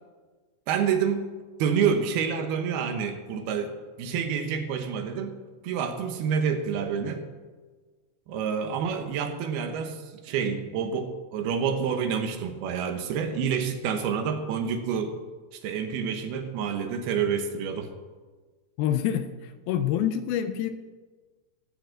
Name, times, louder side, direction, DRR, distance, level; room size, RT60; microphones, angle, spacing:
voice 1, 0.7-1.3 1.6-3.7 4.0-7.2 8.3-15.1 15.5-17.9, right 7 dB, 75° right, 6 dB, 2.9 m, -28 dB
voice 2, 18.8-20.7, left 10 dB, 80° left, 9 dB, 2.4 m, -27 dB
14.0 x 7.6 x 7.5 m, 1.4 s
omnidirectional pair, 4.6 m